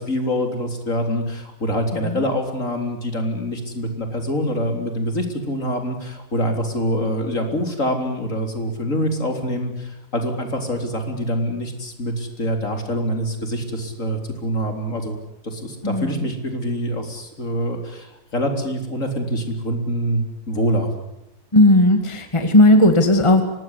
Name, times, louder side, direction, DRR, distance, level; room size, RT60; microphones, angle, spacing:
voice 1, 0.0-15.2 15.4-20.9, equal, 50° left, 4 dB, 4.2 m, -25 dB
voice 2, 21.5-23.4, left 1 dB, 20° left, 6 dB, 2.1 m, -15 dB
25.0 x 19.5 x 9.9 m, 0.88 s
omnidirectional pair, 1.7 m